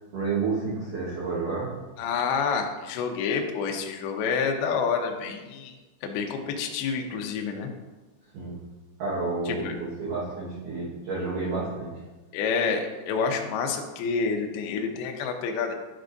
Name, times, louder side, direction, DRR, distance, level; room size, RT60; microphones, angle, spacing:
voice 1, 0.1-1.7 8.3-8.6 9.0-11.9, right 4 dB, 60° right, -9 dB, 2.3 m, -30 dB
voice 2, 2.0-5.7 6.0-7.7 9.5-9.7 12.3-15.7, left 5 dB, 80° left, 3 dB, 2.3 m, -28 dB
10.5 x 4.6 x 2.6 m, 1.2 s
omnidirectional pair, 5.3 m